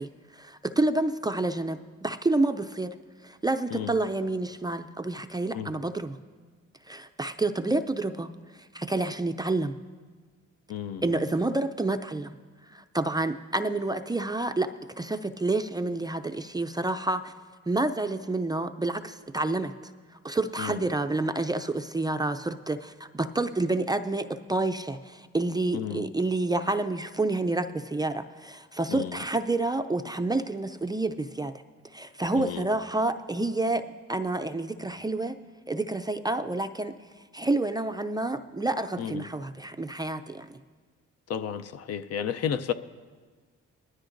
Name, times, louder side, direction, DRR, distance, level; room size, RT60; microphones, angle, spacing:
voice 1, 0.0-2.9 3.2-6.2 6.9-9.8 11.0-12.4 12.7-14.7 15.0-17.3 17.7-19.9 20.2-31.5 31.9-33.8 34.1-35.4 35.7-36.9 37.3-40.5, right 2 dB, 15° right, 8 dB, 0.4 m, -29 dB
voice 2, 10.7-11.0 20.6-20.8 25.7-26.1 28.9-29.1 32.4-32.6 39.0-39.2 41.3-42.7, left 8 dB, 55° left, 12 dB, 0.6 m, -32 dB
20.5 x 13.0 x 2.6 m, 1.5 s
cardioid pair, 90°, 30 cm